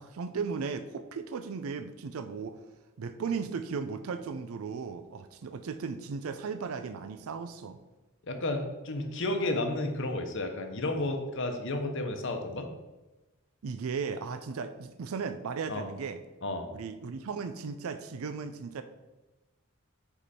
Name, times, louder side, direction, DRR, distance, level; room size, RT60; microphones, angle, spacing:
voice 1, 0.0-2.6 3.0-7.8 13.6-16.2 16.7-18.8, right 5 dB, 85° right, 9 dB, 0.4 m, -36 dB
voice 2, 8.3-12.7 15.7-15.9 16.4-16.7, left 2 dB, 60° left, 5 dB, 0.8 m, -32 dB
5.2 x 4.8 x 4.2 m, 1.1 s
head